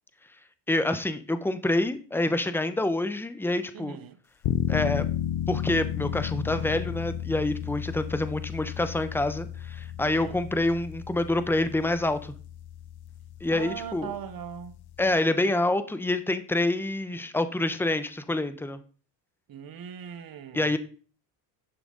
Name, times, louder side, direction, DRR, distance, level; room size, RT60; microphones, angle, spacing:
voice 1, 0.7-4.0 4.7-5.0 5.5-12.3 13.4-14.1 15.0-18.8 20.5-20.8, left 2 dB, 5° left, 1.0 m, -27 dB
voice 2, 3.7-4.2 10.0-10.4 13.5-14.8 19.5-20.8, right 8 dB, 45° right, 1.3 m, -40 dB
sound 1, 4.4-15.2, left 10 dB, 50° left, 0.8 m, -33 dB
11.0 x 5.9 x 4.0 m
supercardioid pair, 80°, 49 cm